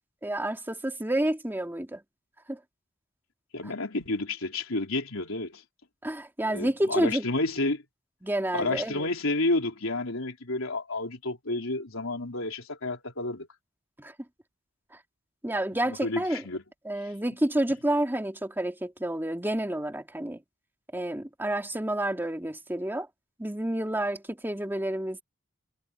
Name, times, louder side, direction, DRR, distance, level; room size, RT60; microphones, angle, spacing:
voice 1, 0.2-2.0 2.5-2.6 6.0-7.3 8.2-9.1 14.0-14.1 15.4-16.5 16.8-20.4 20.9-23.1 23.4-25.2, right 1 dB, 10° right, 2.1 m, -29 dB
voice 2, 3.5-5.6 6.5-7.8 8.5-13.5 15.9-16.6 17.0-17.1, left 2 dB, 90° left, 3.7 m, -30 dB
head